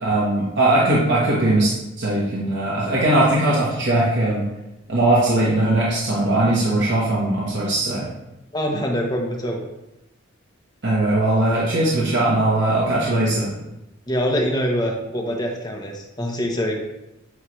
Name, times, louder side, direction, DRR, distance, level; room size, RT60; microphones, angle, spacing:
voice 1, 0.0-4.4 4.9-8.1 10.8-13.5, right 1 dB, 60° right, -7 dB, 1.3 m, -20 dB
voice 2, 8.5-9.6 14.1-16.8, equal, 20° left, 0 dB, 1.0 m, -24 dB
9.1 x 3.2 x 3.2 m, 0.92 s
head